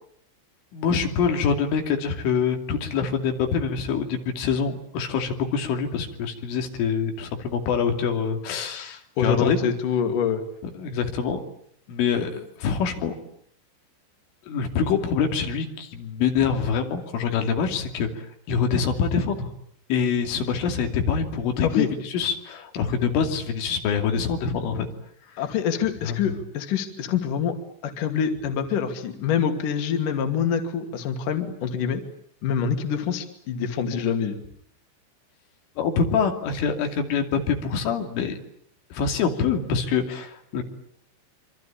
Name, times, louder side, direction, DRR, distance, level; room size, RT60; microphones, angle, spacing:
voice 1, 0.7-9.6 10.8-11.4 11.9-13.2 14.5-19.5 19.9-24.9 26.0-26.3 35.8-38.4 38.9-40.6, left 6 dB, 80° left, 4 dB, 5.2 m, -25 dB
voice 2, 9.2-10.4 21.6-21.9 25.4-27.6 27.8-32.0 32.4-34.4, left 7 dB, 50° left, 6 dB, 3.7 m, -25 dB
26.5 x 25.5 x 8.8 m, 0.67 s
omnidirectional pair, 5.5 m